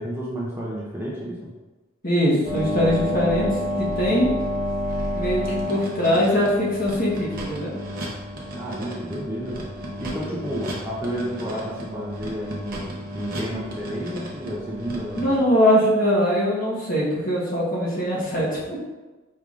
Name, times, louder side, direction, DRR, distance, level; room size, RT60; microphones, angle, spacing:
voice 1, 0.0-1.5 8.5-9.7 10.0-15.3, equal, 10° right, -5 dB, 0.5 m, -31 dB
voice 2, 2.0-3.5 3.8-4.3 5.1-7.7 15.1-18.9, equal, 40° left, -6 dB, 1.2 m, -22 dB
sound 1, 2.4-15.4, equal, 45° right, 0.8 m, -31 dB
4.7 x 3.4 x 2.4 m, 1.2 s
head